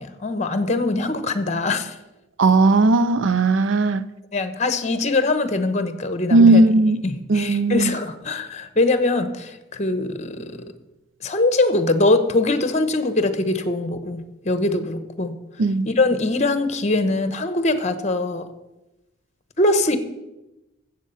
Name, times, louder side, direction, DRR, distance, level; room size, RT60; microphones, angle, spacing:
voice 1, 0.0-2.0 4.3-6.6 7.0-10.7 11.2-15.4 15.8-18.5 19.6-20.0, left 2 dB, 35° left, 1.0 m, -22 dB
voice 2, 2.4-4.0 6.3-7.0 7.3-7.9 15.6-15.9, right 2 dB, 70° right, 0.5 m, -16 dB
14.5 x 7.5 x 5.6 m
head